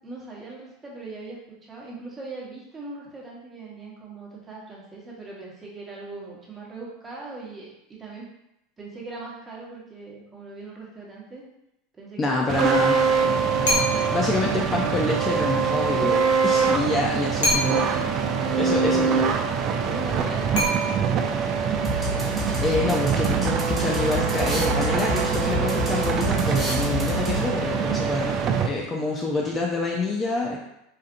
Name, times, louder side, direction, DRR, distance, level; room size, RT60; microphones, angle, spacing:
voice 1, 0.0-8.3 8.8-11.4 11.9-13.1 17.7-18.1 18.6-19.3 19.8-21.7, right 3 dB, 20° right, -5 dB, 1.1 m, -39 dB
voice 2, 12.2-13.0 14.1-17.8 18.6-19.0 22.6-30.6, left 2 dB, 20° left, -1 dB, 0.5 m, -27 dB
sound 1, 12.5-28.7, right 6 dB, 40° right, 0.4 m, -24 dB
sound 2, 13.6-14.3 17.4-18.1 20.5-21.3, equal, 80° left, 1.1 m, -26 dB
sound 3, 21.8-27.7, left 1 dB, 5° right, 1.0 m, -29 dB
4.1 x 2.4 x 2.5 m, 0.85 s
supercardioid pair, 120°, 0 cm